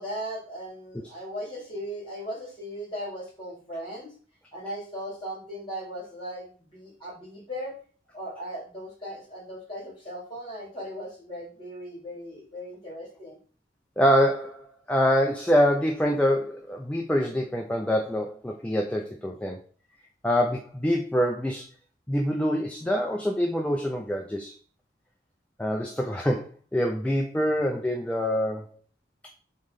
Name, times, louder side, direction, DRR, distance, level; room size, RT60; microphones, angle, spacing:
voice 1, 0.0-4.1 4.5-7.7 8.1-13.4, equal, 30° left, -3 dB, 2.3 m, -37 dB
voice 2, 14.0-19.6 20.2-21.7 22.1-24.5 25.6-28.7, equal, 5° left, 1 dB, 0.3 m, -25 dB
3.7 x 3.1 x 3.8 m, 0.40 s
head